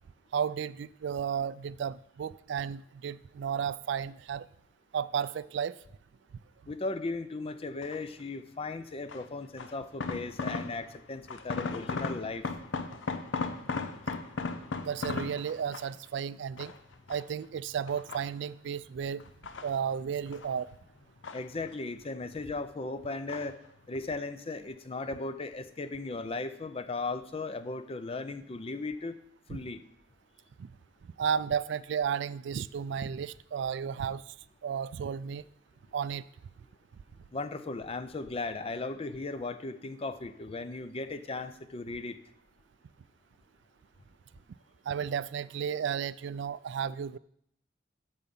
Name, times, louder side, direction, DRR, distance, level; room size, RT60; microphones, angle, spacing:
voice 1, 0.3-4.5 4.9-5.8 14.8-16.7 17.1-19.2 19.6-20.7 30.6-30.7 31.2-34.3 34.6-35.4 35.9-36.2 44.9-47.2, right 7 dB, 65° right, 0.3 m, -33 dB
voice 2, 6.7-12.5 21.3-23.6 23.9-29.2 29.5-29.8 37.3-42.2, left 3 dB, 30° left, 0.5 m, -37 dB
sound 1, 7.8-8.2 9.1-11.0 11.3-16.1 16.6-17.4 17.9-18.7 19.2-20.5 20.8-22.0 22.3-22.9 23.3-23.7 23.9-24.0, left 4 dB, 80° left, 0.7 m, -37 dB
8.8 x 7.0 x 5.4 m
head